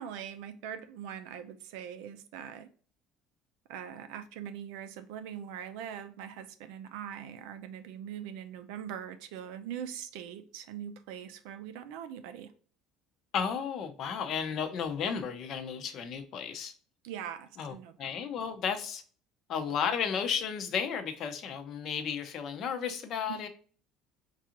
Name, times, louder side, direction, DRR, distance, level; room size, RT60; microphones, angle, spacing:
voice 1, 0.0-2.7 3.7-12.5 17.0-18.1 23.3-23.5, right 9 dB, 80° right, 0.5 m, -42 dB
voice 2, 13.3-16.7 17.6-19.0 19.5-23.5, left 7 dB, 40° left, 0.6 m, -33 dB
4.6 x 2.5 x 2.9 m
cardioid pair, 175°, 0 cm